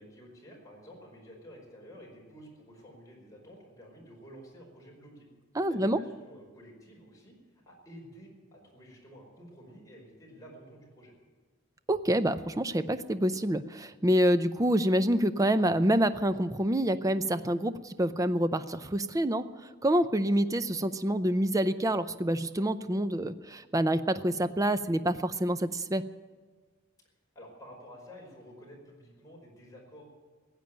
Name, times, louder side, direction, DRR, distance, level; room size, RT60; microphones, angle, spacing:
voice 1, 0.0-5.3 5.7-7.4 7.6-11.1 27.3-30.0, equal, 15° left, -2 dB, 5.0 m, -51 dB
voice 2, 5.6-6.0 11.9-19.4 19.8-26.0, right 1 dB, 15° right, 12 dB, 0.5 m, -27 dB
16.0 x 9.0 x 9.0 m, 1.4 s
head